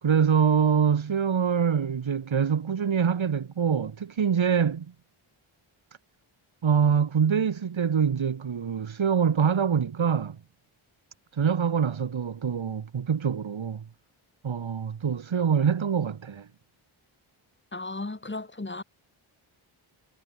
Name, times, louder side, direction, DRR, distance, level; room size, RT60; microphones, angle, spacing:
voice 1, 0.0-4.9 6.6-10.4 11.3-13.8 14.4-16.5, right 7 dB, 65° right, 3.1 m, -24 dB
voice 2, 17.7-18.8, left 2 dB, 20° left, 5.9 m, -35 dB
wide cardioid pair, 115°, 50 cm